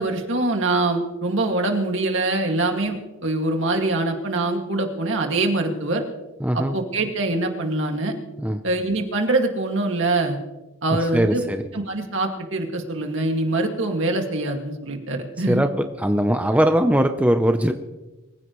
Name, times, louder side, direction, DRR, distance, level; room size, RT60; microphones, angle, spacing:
voice 1, 0.0-3.0 3.2-6.0 6.5-8.1 8.6-10.4 10.8-11.4 11.7-15.6, right 2 dB, 60° right, 3 dB, 2.2 m, -24 dB
voice 2, 6.4-6.8 8.4-8.6 11.1-11.6 15.5-17.7, equal, 5° right, 6 dB, 0.7 m, -20 dB
24.0 x 15.5 x 3.1 m, 1.1 s
head